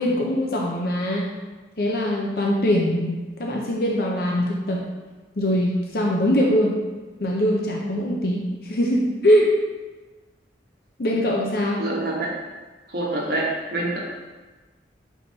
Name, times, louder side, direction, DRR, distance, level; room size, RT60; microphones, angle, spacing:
voice 1, 0.0-1.3 1.8-4.9 5.4-6.8 7.2-9.5 11.0-11.9, equal, 55° left, -2 dB, 0.7 m, -22 dB
voice 2, 11.8-12.3 12.9-14.0, right 2 dB, 55° right, -2 dB, 1.2 m, -26 dB
6.9 x 4.8 x 2.8 m, 1.3 s
head